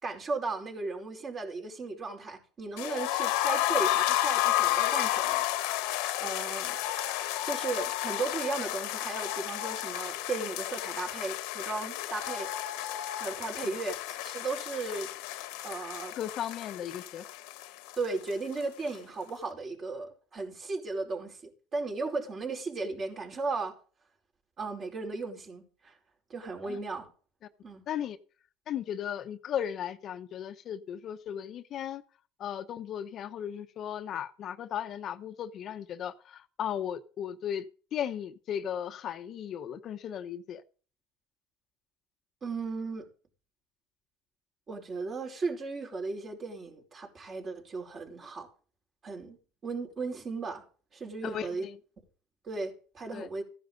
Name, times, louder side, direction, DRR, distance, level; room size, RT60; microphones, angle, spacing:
voice 1, 0.0-5.4 6.2-6.8 7.4-12.5 13.2-15.1 15.6-16.1 18.0-23.7 24.6-26.0 26.3-27.1 27.6-27.8 42.4-43.1 44.7-48.5 49.0-49.4 49.6-50.6 50.9-51.7 52.4-53.4, right 3 dB, 40° right, 4.7 m, -36 dB
sound 1, 2.8-18.6 18.9-19.0 19.3-19.4, left 14 dB, 80° left, 1.3 m, -32 dB
voice 2, 16.1-17.2 26.6-26.8 27.9-28.2 28.7-32.0 32.4-37.6 37.9-40.6 51.2-51.8 53.1-53.3, left 9 dB, 50° left, 0.9 m, -36 dB
15.0 x 10.5 x 3.9 m
supercardioid pair, 100°, 0 cm